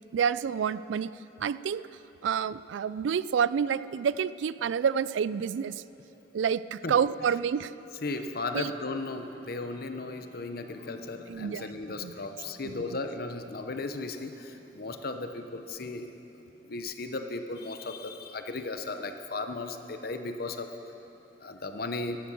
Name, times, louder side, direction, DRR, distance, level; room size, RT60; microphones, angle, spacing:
voice 1, 0.1-1.1 1.4-1.9 2.2-5.8 6.3-7.7 8.5-8.7 11.3-12.1 12.6-13.0, right 7 dB, 85° right, 16 dB, 0.3 m, -29 dB
voice 2, 8.0-16.1 16.6-20.7 21.4-22.2, left 3 dB, 55° left, 7 dB, 0.8 m, -36 dB
Wind instrument woodwind instrument, 9.2-14.3, right 2 dB, 50° right, 1.9 m, -59 dB
14.0 x 11.0 x 6.2 m, 3.0 s
head